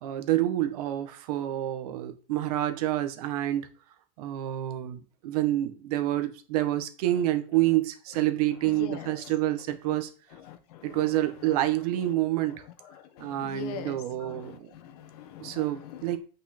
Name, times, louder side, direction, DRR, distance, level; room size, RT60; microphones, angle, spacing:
voice 1, 0.0-3.7 4.2-10.1 10.8-12.6 13.2-14.7 15.4-16.2, right 14 dB, 65° right, 1.4 m, -28 dB
voice 2, 8.6-9.1 10.4-11.2 12.9-16.2, left 10 dB, 65° left, 1.4 m, -42 dB
8.3 x 5.5 x 4.4 m
supercardioid pair, 165°, 21 cm